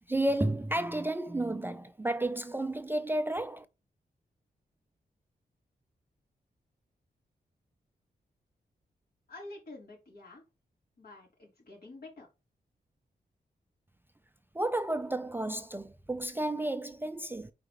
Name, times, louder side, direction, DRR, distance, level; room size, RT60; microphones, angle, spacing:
voice 1, 0.1-3.7 14.5-17.5, right 1 dB, 15° right, 0.4 m, -32 dB
voice 2, 9.3-10.4 11.0-12.3, left 2 dB, 70° left, 3.8 m, -48 dB
4.8 x 4.0 x 4.9 m
wide cardioid pair, 145°, 16 cm